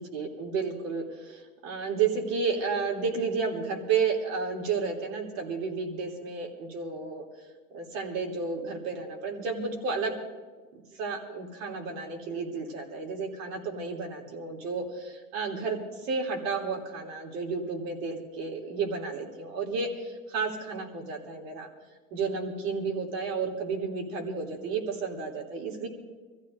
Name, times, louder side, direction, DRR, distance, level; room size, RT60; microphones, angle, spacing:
voice 1, 0.0-7.2 7.7-10.1 10.9-21.7 22.1-25.9, right 5 dB, 70° right, 0 dB, 3.3 m, -32 dB
26.0 x 14.5 x 2.7 m, 1.4 s
hypercardioid pair, 80°, 41 cm